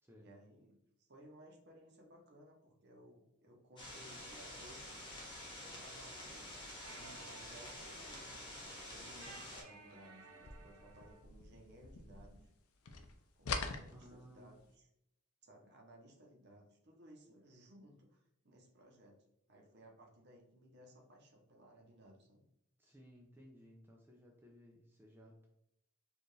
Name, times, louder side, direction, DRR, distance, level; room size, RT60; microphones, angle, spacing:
voice 1, 0.1-4.8 5.6-12.5 13.1-14.9 15.4-22.4, right 1 dB, 50° right, 0 dB, 0.8 m, -60 dB
sound 1, 3.8-9.6, left 1 dB, 20° left, 1.0 m, -49 dB
sound 2, 6.2-11.2, right 3 dB, 85° right, 0.7 m, -58 dB
sound 3, 10.3-12.6 12.8-14.6, left 4 dB, 85° left, 0.5 m, -44 dB
voice 2, 13.9-14.5 22.8-25.5, equal, 10° right, -1 dB, 0.4 m, -59 dB
4.5 x 2.5 x 3.2 m, 0.79 s
head